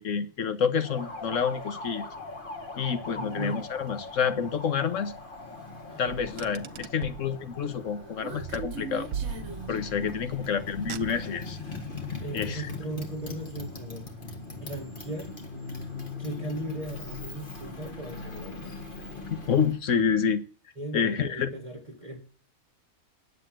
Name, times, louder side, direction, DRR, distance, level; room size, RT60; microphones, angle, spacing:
voice 1, 0.0-2.0 2.8-5.1 6.0-9.1 9.7-11.6 12.3-12.6 19.3-20.4 20.9-21.5, left 7 dB, 55° left, 11 dB, 1.3 m, -28 dB
Motorcycle, 0.8-19.8, left 3 dB, 35° left, 1.8 m, -40 dB
voice 2, 3.2-3.7 5.9-6.6 12.2-14.1 14.5-15.3 16.2-18.8 20.8-22.2, right 2 dB, 25° right, 0 dB, 1.6 m, -38 dB
Car, 6.1-7.3 8.5-9.8 10.7-11.5, right 8 dB, 75° right, 1.2 m, -38 dB
Human voice, 7.7-10.7, right 5 dB, 50° right, 1.2 m, -41 dB
10.0 x 7.7 x 7.6 m, 0.41 s
omnidirectional pair, 1.6 m